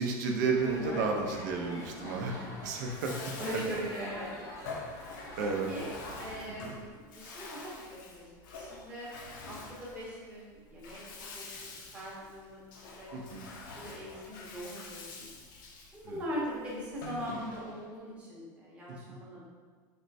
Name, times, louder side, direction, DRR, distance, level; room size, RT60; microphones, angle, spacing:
voice 1, 0.0-2.3 2.6-3.3 5.4-5.7 6.5-6.7 13.1-13.4 16.0-16.2 19.1-19.2, right 4 dB, 65° right, 1 dB, 0.6 m, -32 dB
sound 1, 0.6-6.4, left 1 dB, 30° left, 0.6 m, -44 dB
voice 2, 0.8-1.2 2.3-2.5 3.4-4.3 4.7-4.8 5.4-7.7 8.1-9.1 9.5-11.0 11.3-11.4 11.9-12.6 13.0-13.1 13.5-15.3 15.9-19.4, equal, 10° right, -7 dB, 0.8 m, -41 dB
Bathtub (filling or washing), 2.8-17.9, left 3 dB, 90° left, 0.7 m, -47 dB
4.2 x 3.2 x 2.6 m, 1.5 s
supercardioid pair, 180°, 10 cm